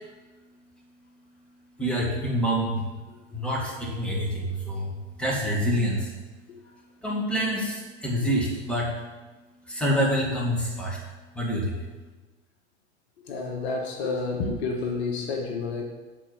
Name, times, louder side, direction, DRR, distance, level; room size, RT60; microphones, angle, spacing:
voice 1, 1.8-2.9 3.3-6.1 7.0-8.9 9.7-11.0 11.3-11.8, equal, 5° left, -4 dB, 2.0 m, -27 dB
voice 2, 13.3-15.8, left 4 dB, 65° left, 1 dB, 1.4 m, -29 dB
6.7 x 4.5 x 6.2 m, 1.3 s
hypercardioid pair, 90°, 34 cm